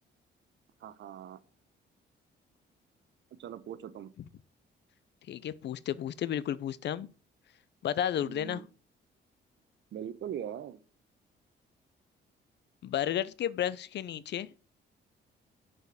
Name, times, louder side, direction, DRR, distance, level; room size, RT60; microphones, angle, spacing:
voice 1, 0.8-1.4 3.4-4.1 8.2-8.7 9.9-10.8, right 9 dB, 65° right, 0.9 m, -41 dB
voice 2, 5.3-7.1 7.8-8.6 12.8-14.5, left 10 dB, 60° left, 0.6 m, -32 dB
6.4 x 5.1 x 6.8 m
cardioid pair, 90°, 20 cm